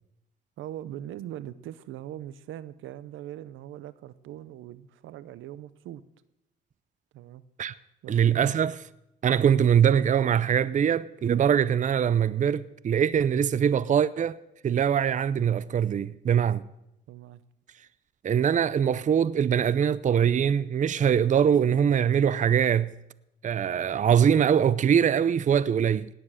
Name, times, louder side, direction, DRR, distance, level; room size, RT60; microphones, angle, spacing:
voice 1, 0.6-6.0 7.1-7.4 8.0-8.5 17.1-17.4, right 12 dB, 85° right, 0.8 m, -41 dB
voice 2, 8.1-8.7 9.2-14.4 14.6-16.6 18.2-22.9 23.4-26.1, right 8 dB, 40° right, 0.6 m, -23 dB
18.0 x 9.7 x 6.4 m
cardioid pair, 90°, 20 cm